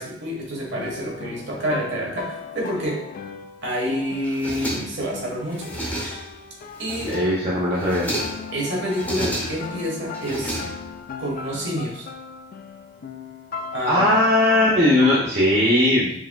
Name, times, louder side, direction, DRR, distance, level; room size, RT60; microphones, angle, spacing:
voice 1, 0.0-3.0 3.6-5.8 6.8-7.1 8.5-10.6 11.2-12.1 13.7-14.2, equal, 65° right, -3 dB, 1.3 m, -28 dB
sound 1, 0.7-15.2, left 5 dB, 45° left, 0.3 m, -37 dB
sound 2, 4.2-5.1 5.5-6.4 6.8-7.4 7.7-8.5 8.9-9.8 10.1-11.1, right 1 dB, 10° left, 0.7 m, -31 dB
voice 2, 7.1-8.1 13.9-16.1, left 1 dB, 30° right, -8 dB, 0.7 m, -18 dB
4.5 x 3.6 x 2.2 m, 0.75 s
head